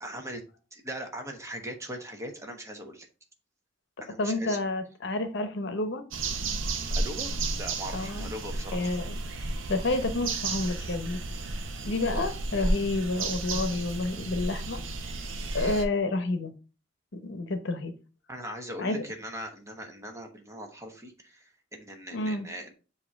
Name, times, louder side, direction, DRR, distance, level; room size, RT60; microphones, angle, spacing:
voice 1, 0.0-0.4 0.7-3.1 4.0-4.6 6.8-9.0 12.0-12.3 18.3-22.7, equal, 15° right, 4 dB, 1.1 m, -40 dB
voice 2, 4.2-6.0 7.9-8.3 8.7-9.1 9.7-11.2 11.9-14.8 15.5-16.5 17.2-17.9 18.8-19.0 22.1-22.5, left 2 dB, 65° left, 9 dB, 0.9 m, -29 dB
sound 1, 6.1-15.8, right 2 dB, 80° right, 0.7 m, -32 dB
7.3 x 2.9 x 4.5 m, 0.33 s
head